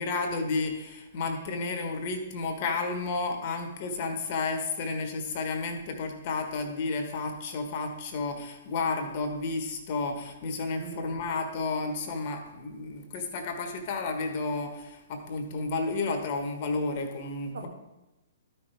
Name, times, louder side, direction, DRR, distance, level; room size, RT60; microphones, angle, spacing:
voice 1, 0.0-17.7, left 3 dB, 45° left, 4 dB, 1.4 m, -32 dB
voice 2, 10.6-11.3 12.0-12.2 17.5-17.7, right 5 dB, 70° right, 1 dB, 1.9 m, -43 dB
13.0 x 5.9 x 3.5 m, 0.96 s
figure-of-eight pair, 120°, 0 cm